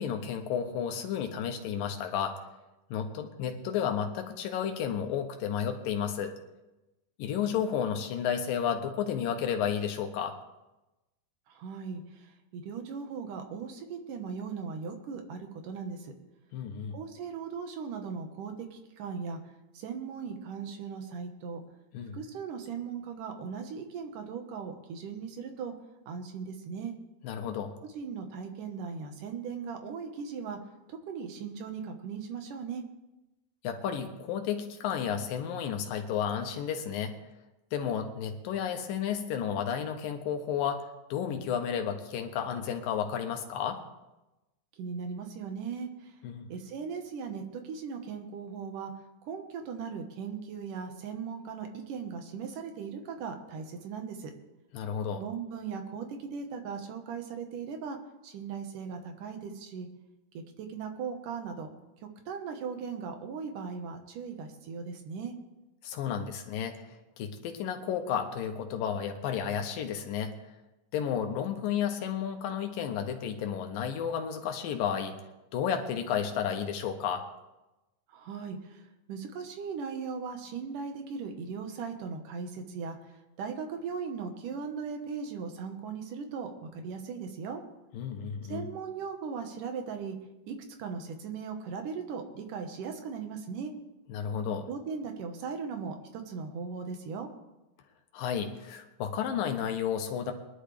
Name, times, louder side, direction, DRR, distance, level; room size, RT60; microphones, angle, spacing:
voice 1, 0.0-2.4 2.9-6.3 7.2-10.4 16.5-17.0 21.9-22.2 27.2-27.7 33.6-37.1 37.7-43.8 46.2-46.5 54.7-55.2 65.8-66.8 67.2-70.3 70.9-75.1 75.5-77.3 87.9-88.6 94.1-94.7 98.1-100.3, left 8 dB, 80° left, 5 dB, 2.9 m, -32 dB
voice 2, 11.5-12.3 12.5-16.1 16.9-19.4 19.7-21.6 22.1-25.7 26.1-26.9 28.0-30.6 30.9-32.8 44.8-46.1 46.5-48.9 49.2-54.3 55.2-58.0 58.2-59.9 60.3-61.7 62.3-65.3 78.1-83.0 83.4-87.6 88.5-90.2 90.5-93.7 94.7-97.3, right 6 dB, 70° right, 5 dB, 2.8 m, -38 dB
21.5 x 11.5 x 3.4 m, 1.0 s
omnidirectional pair, 4.0 m